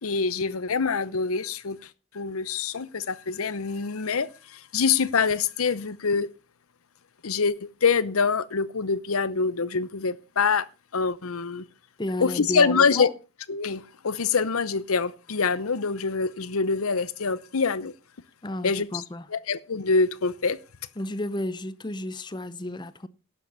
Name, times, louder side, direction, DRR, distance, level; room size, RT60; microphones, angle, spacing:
voice 1, 0.0-6.3 7.2-10.7 10.9-11.7 12.2-13.1 13.5-17.9 18.6-19.0 19.3-20.6, left 5 dB, 80° left, 0.8 m, -25 dB
voice 2, 12.0-13.1 18.4-19.3 21.0-23.1, left 1 dB, 20° left, 0.6 m, -32 dB
11.5 x 7.5 x 6.8 m
head